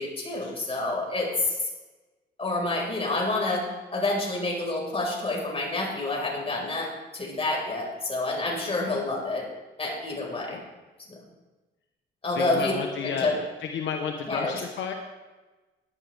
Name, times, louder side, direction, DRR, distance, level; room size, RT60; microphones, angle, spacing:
voice 1, 0.0-1.6 2.4-3.6 3.9-9.4 9.8-10.6 12.2-12.7 13.0-13.3 14.3-14.6, left 2 dB, 30° left, -2 dB, 5.2 m, -28 dB
voice 2, 12.3-14.9, left 7 dB, 70° left, 3 dB, 1.2 m, -32 dB
17.5 x 11.5 x 3.5 m, 1.2 s
cardioid pair, 90°, 20 cm